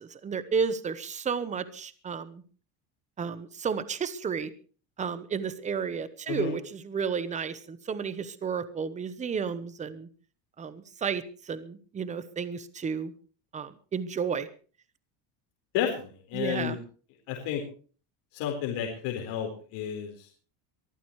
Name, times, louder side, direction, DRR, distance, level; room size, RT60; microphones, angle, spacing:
voice 1, 0.0-2.4 3.2-4.5 5.0-10.1 10.6-13.1 13.5-14.5 16.3-16.8, right 6 dB, 15° right, 14 dB, 0.9 m, -32 dB
voice 2, 15.7-16.8 17.3-17.6 18.3-20.3, left 9 dB, 65° left, 1 dB, 4.3 m, -31 dB
23.5 x 14.0 x 3.2 m, 0.39 s
cardioid pair, 175°, 47 cm